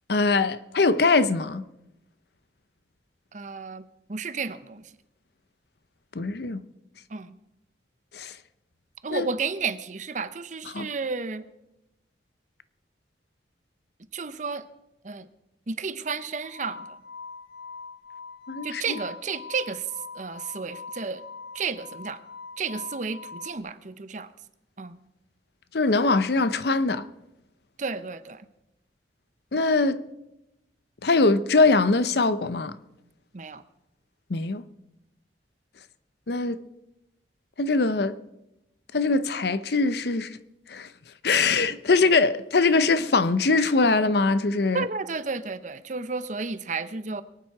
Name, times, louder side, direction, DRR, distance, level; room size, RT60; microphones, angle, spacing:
voice 1, 0.1-1.6 6.1-6.6 8.1-8.3 9.1-9.3 10.7-10.9 18.5-19.0 25.7-27.0 29.5-30.0 31.0-32.8 34.3-34.6 36.3-36.6 37.6-38.2 38.9-40.3 40.7-40.9 41.2-44.8, left 3 dB, 60° left, 0.7 m, -22 dB
voice 2, 3.3-4.9 7.1-7.4 9.0-11.5 14.1-14.7 15.0-15.3 15.7-17.0 18.6-19.9 20.1-21.2 21.5-22.2 22.6-24.3 24.8-25.0 27.8-28.5 33.3-33.6 44.7-47.2, right 4 dB, 40° right, 0.7 m, -32 dB
sound 1, 16.4-23.6, left 4 dB, 80° left, 1.5 m, -42 dB
23.0 x 9.1 x 4.7 m
head